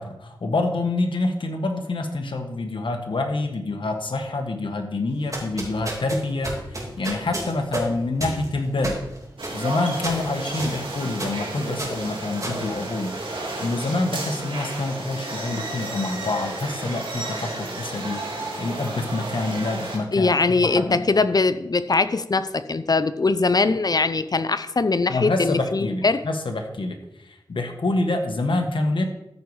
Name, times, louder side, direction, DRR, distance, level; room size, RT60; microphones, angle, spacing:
voice 1, 0.0-9.0 9.5-13.1 13.6-21.0 25.1-29.0, left 2 dB, 75° left, 4 dB, 1.3 m, -27 dB
sound 1, 5.1-13.5, right 1 dB, 40° right, 2.8 m, -33 dB
sound 2, 9.4-20.0, right 2 dB, 85° right, 2.1 m, -32 dB
voice 2, 20.1-26.2, left 3 dB, 50° left, 12 dB, 0.6 m, -21 dB
13.5 x 5.5 x 4.8 m, 0.88 s
cardioid pair, 50°, 9 cm